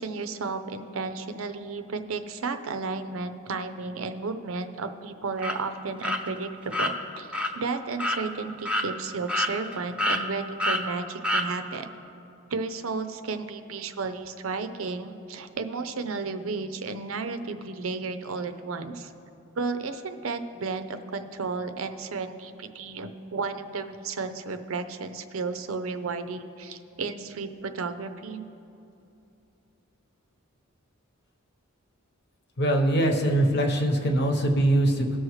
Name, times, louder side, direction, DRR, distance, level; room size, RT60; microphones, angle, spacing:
voice 1, 0.0-7.3 7.5-11.9 12.5-19.1 19.6-28.4, right 4 dB, 80° right, 9 dB, 0.6 m, -33 dB
sound 1, 5.4-5.6 6.0-6.2 6.7-6.9 7.3-7.5 8.0-8.2 8.7-8.9 9.3-9.7 10.0-10.2 10.6-10.8 11.2-11.5, left 1 dB, 5° right, 0.6 m, -26 dB
voice 2, 32.6-35.2, right 1 dB, 55° left, 3 dB, 1.1 m, -22 dB
19.0 x 6.3 x 3.2 m, 2.7 s
head